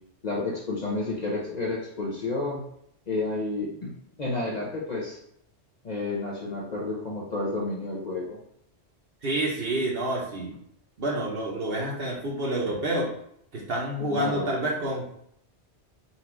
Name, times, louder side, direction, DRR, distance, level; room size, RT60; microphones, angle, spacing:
voice 1, 0.2-2.6 3.1-5.2 5.8-8.4 14.1-14.5, left 2 dB, 40° left, -4 dB, 0.8 m, -31 dB
voice 2, 9.2-10.6 11.0-13.1 13.5-15.1, right 1 dB, 60° right, -4 dB, 1.0 m, -28 dB
4.1 x 2.5 x 4.4 m, 0.71 s
omnidirectional pair, 1.2 m